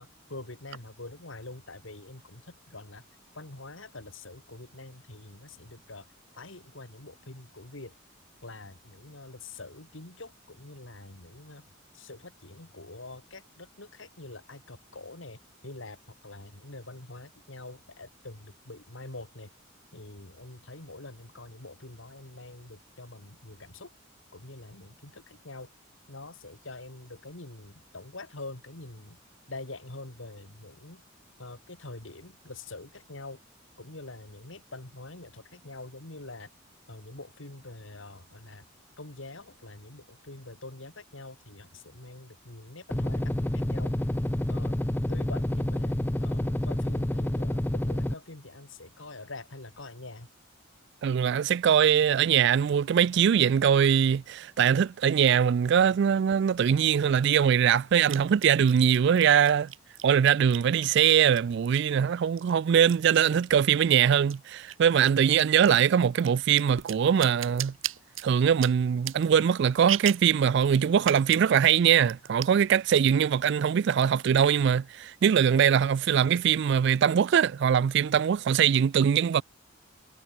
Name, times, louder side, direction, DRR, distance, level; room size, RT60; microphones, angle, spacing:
voice 1, 0.0-3.0 3.3-6.0 6.3-7.9 8.4-11.7 11.9-19.5 19.9-23.9 24.3-25.7 26.1-29.2 29.5-31.0 31.4-33.4 33.8-36.5 36.9-38.6 39.0-43.9 44.5-44.8 45.1-45.9 46.2-50.3, left 2 dB, 75° left, 2.8 m, -45 dB
sound 1, 42.9-48.1, left 1 dB, 10° left, 0.5 m, -28 dB
voice 2, 51.0-59.7 60.0-67.7 68.2-79.4, right 8 dB, 60° right, 0.3 m, -22 dB
sound 2, 56.3-56.4 58.1-62.0 62.4-63.9 64.2-70.4 71.0-71.5 71.8-71.9 72.1-72.7 73.0-73.5 73.8-74.7, right 12 dB, 80° right, 2.5 m, -37 dB
head